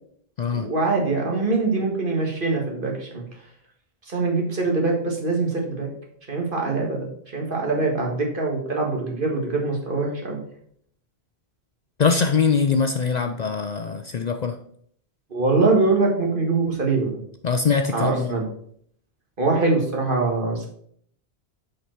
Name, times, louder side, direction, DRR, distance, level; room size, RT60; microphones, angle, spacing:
voice 1, 0.5-3.2 4.1-5.9 6.3-7.0 7.3-10.4 15.3-17.1 17.9-18.4 19.4-20.7, right 3 dB, 55° right, -1 dB, 1.8 m, -23 dB
voice 2, 12.0-14.5 17.4-18.3, left 5 dB, 55° left, 7 dB, 0.5 m, -22 dB
7.0 x 5.2 x 4.5 m, 0.64 s
omnidirectional pair, 1.1 m